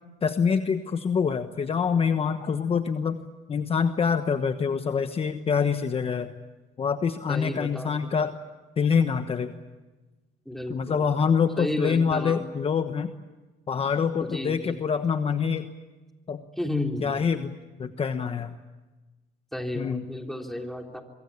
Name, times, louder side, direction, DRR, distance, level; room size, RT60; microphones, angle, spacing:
voice 1, 0.2-3.2 3.5-6.4 6.8-8.4 8.8-9.5 10.7-13.1 13.7-15.7 16.3-16.4 17.0-18.5 19.7-20.0, left 6 dB, 35° left, 8 dB, 1.2 m, -25 dB
voice 2, 7.3-8.2 10.4-11.1 11.6-12.4 14.2-14.8 16.6-17.2 19.5-21.0, left 1 dB, ahead, 2 dB, 3.5 m, -32 dB
25.0 x 23.5 x 8.5 m, 1.2 s
cardioid pair, 110°, 17 cm